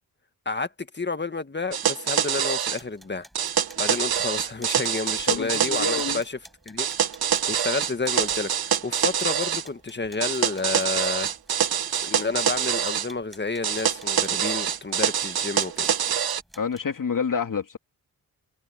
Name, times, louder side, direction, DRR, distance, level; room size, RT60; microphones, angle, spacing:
voice 1, 0.4-3.3 3.8-6.4 6.6-6.9 7.5-11.3 12.0-15.9, left 3 dB, 30° left, 1.7 m, -30 dB
sound 1, 1.7-2.8 3.4-6.2 6.8-9.7 10.2-13.1 13.6-16.4, right 9 dB, 75° right, 1.3 m, -25 dB
sound 2, 2.8-16.8, equal, ahead, 6.0 m, -52 dB
voice 2, 5.3-6.2 16.6-17.8, left 6 dB, 60° left, 3.0 m, -28 dB
cardioid pair, 70°, 37 cm